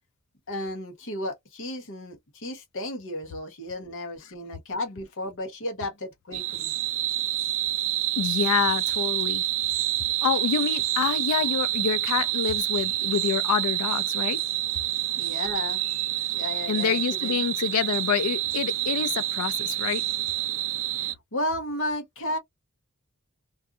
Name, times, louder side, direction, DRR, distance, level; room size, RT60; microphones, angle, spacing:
voice 1, 0.5-6.7 15.2-15.8 16.3-17.3 21.0-22.4, left 1 dB, 60° left, 1.0 m, -33 dB
sound 1, 6.3-21.1, right 14 dB, 60° right, 0.3 m, -27 dB
voice 2, 8.2-9.4 10.2-14.4 16.7-20.0, left 7 dB, 90° left, 0.4 m, -27 dB
2.6 x 2.4 x 2.4 m
head